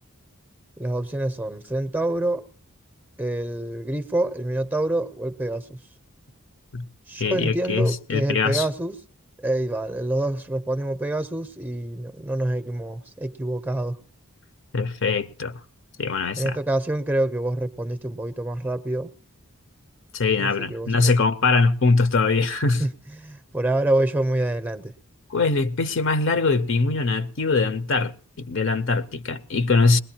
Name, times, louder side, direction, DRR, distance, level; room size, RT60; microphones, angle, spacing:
voice 1, 0.8-2.4 3.2-5.7 7.1-9.0 9.4-14.0 16.4-19.1 20.4-21.1 22.8-22.9 23.2-24.9, right 1 dB, 10° right, 0.6 m, -26 dB
voice 2, 7.2-8.7 14.7-15.6 16.0-16.6 20.1-22.8 25.3-30.0, left 4 dB, 55° left, 0.7 m, -22 dB
21.0 x 19.0 x 2.9 m
head